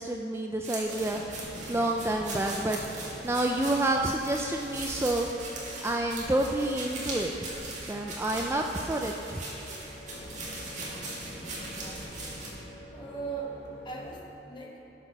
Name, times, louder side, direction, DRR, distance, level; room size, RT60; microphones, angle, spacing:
voice 1, 0.0-1.4 1.7-2.8 3.2-5.3 5.8-7.3 7.8-9.4, right 1 dB, 15° right, 2 dB, 0.4 m, -29 dB
sound 1, 0.6-12.5, right 2 dB, 40° right, 2.2 m, -40 dB
sound 2, 0.8-14.2, equal, 85° left, 1.9 m, -45 dB
voice 2, 11.3-12.0 12.9-14.8, right 3 dB, 25° left, -2 dB, 1.4 m, -40 dB
13.0 x 6.0 x 5.8 m, 2.9 s
head